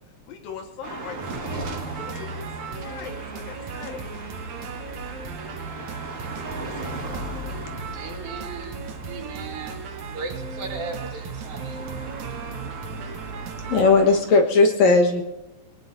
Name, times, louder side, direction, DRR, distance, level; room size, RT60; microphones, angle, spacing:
voice 1, 0.3-1.7 2.0-4.2 5.7-5.9 6.4-7.3 8.8-9.0, left 7 dB, 80° left, 4 dB, 3.2 m, -41 dB
sound 1, 0.8-14.2, right 2 dB, 40° right, 1.1 m, -38 dB
sound 2, 1.2-13.8, right 5 dB, 65° right, 2.2 m, -36 dB
voice 2, 7.9-12.1, right 4 dB, 80° right, 1 dB, 3.8 m, -37 dB
voice 3, 13.7-15.2, left 3 dB, 60° left, 2 dB, 2.3 m, -17 dB
22.5 x 19.0 x 2.7 m, 1.0 s
omnidirectional pair, 4.1 m